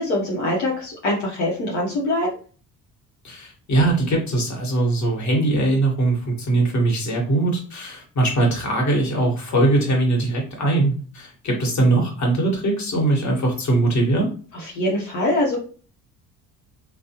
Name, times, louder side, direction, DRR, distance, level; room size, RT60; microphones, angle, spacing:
voice 1, 0.0-2.3 14.5-15.6, left 1 dB, 70° left, -4 dB, 1.0 m, -23 dB
voice 2, 3.2-14.3, right 2 dB, 35° left, 0 dB, 1.5 m, -21 dB
3.3 x 2.3 x 2.9 m, 0.39 s
hypercardioid pair, 50°, 47 cm